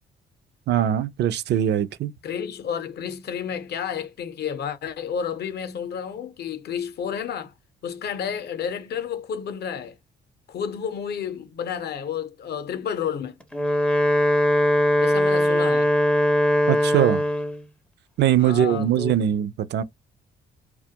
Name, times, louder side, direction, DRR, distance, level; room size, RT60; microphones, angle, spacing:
voice 1, 0.7-2.1 16.7-17.2 18.2-19.8, right 10 dB, 60° right, 0.4 m, -21 dB
voice 2, 2.2-7.5 7.8-10.0 10.5-13.4 15.0-15.9 18.4-19.1, left 7 dB, 55° left, 0.6 m, -31 dB
Wind instrument woodwind instrument, 13.4-17.6, left 1 dB, 5° left, 0.4 m, -20 dB
2.2 x 2.1 x 2.7 m
cardioid pair, 90°, 20 cm